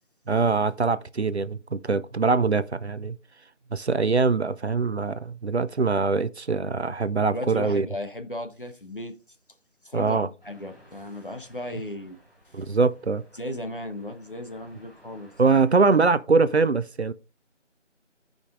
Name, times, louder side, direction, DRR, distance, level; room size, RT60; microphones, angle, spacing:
voice 1, 0.3-3.2 3.7-7.9 9.9-10.3 11.7-11.8 12.5-13.2 15.4-17.1, right 4 dB, 65° right, 0.5 m, -23 dB
voice 2, 7.3-9.1 9.8-12.2 12.5-12.6 13.4-15.3, left 1 dB, 45° left, 1.0 m, -35 dB
sound 1, 10.4-16.0, equal, ahead, 4.9 m, -56 dB
15.0 x 5.1 x 2.5 m
figure-of-eight pair, 180°, 37 cm